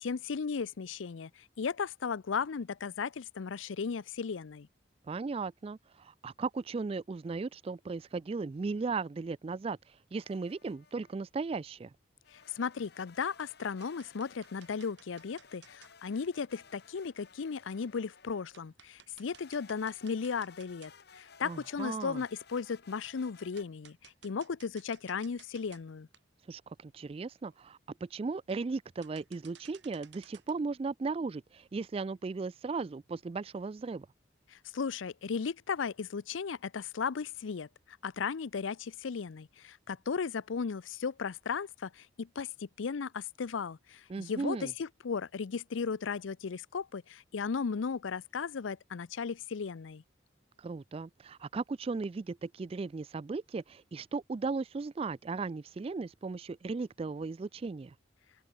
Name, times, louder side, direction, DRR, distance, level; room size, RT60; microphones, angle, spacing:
voice 1, 0.0-4.7 12.3-26.1 34.5-37.7 38.0-50.0, left 5 dB, 85° left, 0.5 m, -36 dB
voice 2, 5.1-11.9 21.4-22.2 26.5-34.1 44.1-44.7 50.6-57.9, right 4 dB, 30° right, 0.3 m, -36 dB
sound 1, 10.1-11.2 12.2-18.6 19.3-23.6, left 6 dB, 55° left, 1.4 m, -58 dB
sound 2, 12.5-12.8 13.2-15.9 17.0-17.1 17.7-17.8 18.2-18.3 18.5-21.2 21.6-21.7 23.0-23.1 23.6-25.8 26.1-26.2 26.8-26.9 27.1-27.2 27.5-27.8 28.4-28.8 29.0-30.6, right 9 dB, 65° right, 5.6 m, -58 dB
open air
head